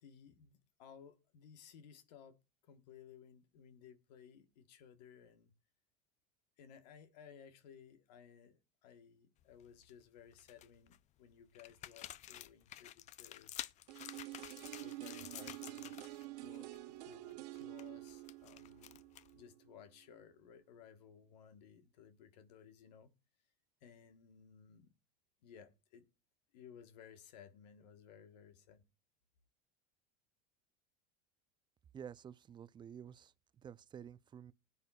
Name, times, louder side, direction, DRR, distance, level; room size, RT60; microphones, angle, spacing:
voice 1, 0.0-2.4 2.6-5.5 6.6-13.7 14.8-16.1 16.4-16.7 17.0-19.0 19.3-23.1 23.8-24.9 25.4-26.1 26.5-28.8, left 8 dB, 80° left, 1.3 m, -59 dB
sound 1, 9.4-9.9 10.3-11.0 11.5-16.3 16.5-16.8 17.1-19.4, left 13 dB, 35° left, 0.4 m, -51 dB
sound 2, 13.9-19.8 20.1-20.2, right 18 dB, 75° right, 0.9 m, -49 dB
voice 2, 31.9-34.5, right 8 dB, 20° right, 0.5 m, -51 dB
19.5 x 8.5 x 2.3 m
supercardioid pair, 110°, 21 cm